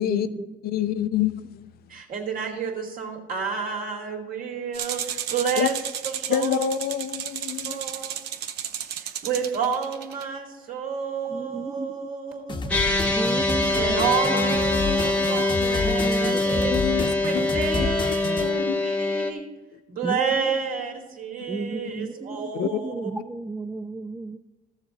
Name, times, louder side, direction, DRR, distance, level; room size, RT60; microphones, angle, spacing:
voice 1, 0.1-0.5 0.8-1.2 11.2-12.1 13.2-14.6 15.8-16.8 17.1-17.9 20.0-20.6 21.5-24.4, right 3 dB, 10° right, 9 dB, 0.3 m, -34 dB
voice 2, 0.6-1.7 5.6-5.7 6.3-7.8 14.3-15.8 16.7-17.9 18.4-18.8 22.5-22.8, left 11 dB, 65° left, 13 dB, 0.5 m, -28 dB
voice 3, 1.9-5.7 6.0-6.7 7.6-8.3 9.0-12.7 13.7-16.8 17.2-19.5 19.9-23.1, right 6 dB, 55° right, 1 dB, 2.4 m, -30 dB
sound 1, 4.7-10.2, right 9 dB, 80° right, 0.8 m, -33 dB
sound 2, 12.5-18.5, left 4 dB, 30° left, 0.8 m, -31 dB
sound 3, 12.7-19.3, left 2 dB, 10° left, 1.1 m, -24 dB
13.5 x 7.2 x 4.0 m, 1.2 s
cardioid pair, 110°, 17 cm